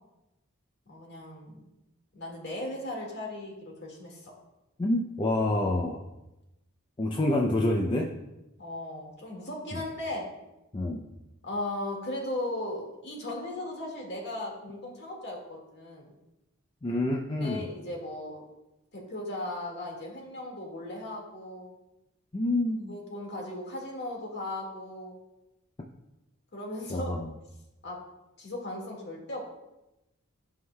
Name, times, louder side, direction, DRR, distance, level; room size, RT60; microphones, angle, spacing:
voice 1, 0.9-1.7 2.1-4.3 8.6-10.3 11.4-16.1 17.4-18.4 18.9-21.7 22.9-25.2 26.5-27.1 27.8-28.0 28.4-29.5, left 1 dB, 50° left, -1 dB, 1.9 m, -37 dB
voice 2, 4.8-6.0 7.0-8.1 9.7-9.8 10.7-11.1 16.8-17.7 22.3-22.9 26.9-27.3, left 1 dB, 20° left, 0 dB, 0.4 m, -27 dB
12.5 x 5.5 x 2.3 m, 0.95 s
head